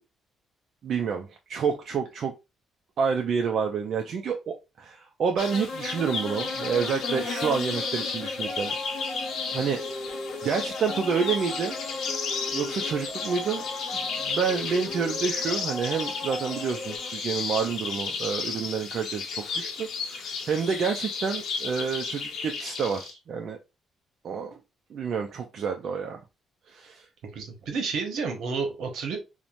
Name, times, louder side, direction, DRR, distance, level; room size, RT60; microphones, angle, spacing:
voice 1, 0.8-2.3 3.0-8.7 9.5-10.2 10.4-11.7 12.5-13.6 13.9-23.6 24.2-24.6 24.9-26.2 26.7-27.1, right 6 dB, 55° right, 3 dB, 0.4 m, -29 dB
sound 1, 5.4-23.1, left 4 dB, 65° left, 0.6 m, -33 dB
sound 2, 8.4-17.0, left 2 dB, 10° left, 1.0 m, -38 dB
voice 2, 27.3-29.2, right 5 dB, 75° right, 3 dB, 0.8 m, -30 dB
3.0 x 2.1 x 2.5 m, 0.26 s
cardioid pair, 115°, 0 cm